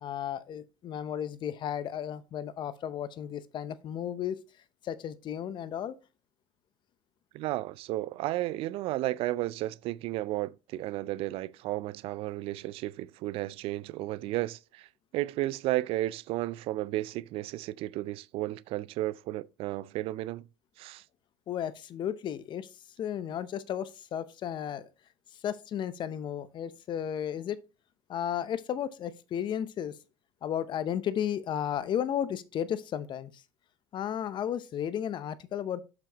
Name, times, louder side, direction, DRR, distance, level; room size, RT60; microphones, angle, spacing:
voice 1, 0.0-4.4 4.8-6.0 21.5-22.7 23.0-24.9 25.3-27.6 28.1-30.0 30.4-33.4 33.9-35.8, left 9 dB, 45° left, 0.7 m, -34 dB
voice 2, 7.3-14.9 15.1-20.4 20.8-21.0, right 16 dB, 55° right, 0.4 m, -33 dB
6.9 x 5.8 x 2.9 m
hypercardioid pair, 85°, 12 cm